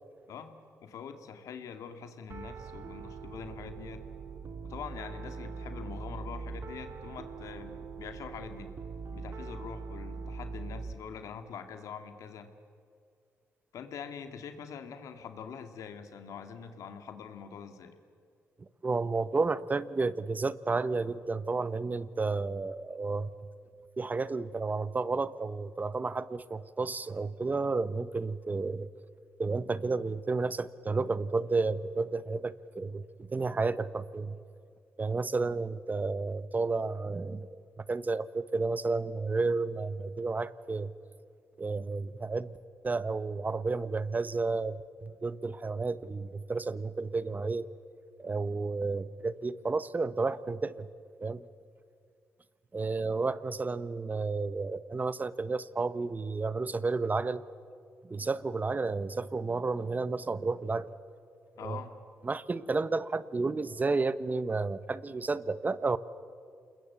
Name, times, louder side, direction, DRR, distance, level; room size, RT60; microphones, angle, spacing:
voice 1, 0.3-4.0 4.6-8.7 9.1-12.5 13.7-18.0 61.6-62.0, left 7 dB, 75° left, 7 dB, 2.4 m, -44 dB
Piano, 2.3-10.9, right 4 dB, 50° right, 1.9 m, -42 dB
voice 2, 18.8-23.3 24.0-28.9 29.4-34.4 35.0-37.6 37.9-40.9 41.6-42.6 42.8-47.7 48.2-50.9 51.2-51.5 52.7-57.4 58.0-60.9 61.6-61.8 62.2-66.0, right 3 dB, 30° right, 16 dB, 1.0 m, -31 dB
28.0 x 21.0 x 8.3 m, 2.3 s
cardioid pair, 70°, 6 cm